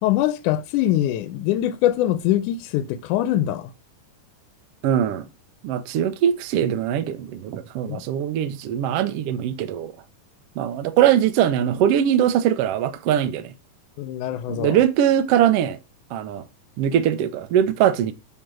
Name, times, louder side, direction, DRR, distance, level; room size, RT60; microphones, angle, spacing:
voice 1, 0.0-3.7 7.9-8.0 14.0-14.8, left 13 dB, 75° left, 2.0 m, -23 dB
voice 2, 4.8-5.3 5.6-9.9 10.6-13.5 14.5-15.8 16.1-16.4 16.8-18.1, right 10 dB, 85° right, 1.3 m, -21 dB
9.1 x 4.0 x 6.1 m
omnidirectional pair, 3.8 m